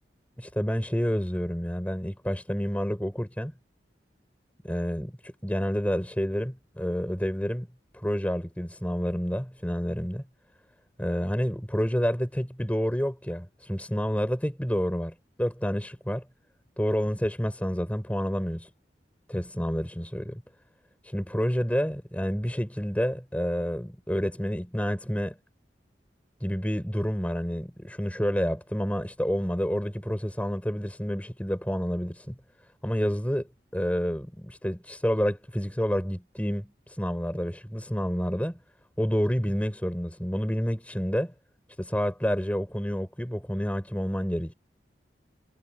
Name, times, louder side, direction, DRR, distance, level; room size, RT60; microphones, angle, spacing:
voice 1, 0.4-3.5 4.6-7.7 7.9-10.2 11.0-16.2 16.8-18.7 19.3-20.4 21.0-25.3 26.4-32.4 32.8-38.6 39.0-41.3 41.8-44.5, equal, 10° left, 5.7 m, -29 dB
head